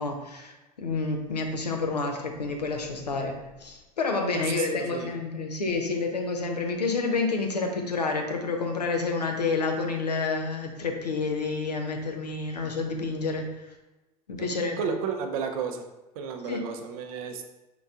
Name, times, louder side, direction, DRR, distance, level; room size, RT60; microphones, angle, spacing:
voice 1, 0.0-13.7 14.3-14.9 16.4-16.7, left 4 dB, 85° left, 3 dB, 0.5 m, -29 dB
voice 2, 4.3-5.1 14.4-14.5 14.8-15.8 16.2-17.5, right 6 dB, 60° right, 5 dB, 0.5 m, -32 dB
4.3 x 3.9 x 2.4 m, 1.0 s
figure-of-eight pair, 70°, 20 cm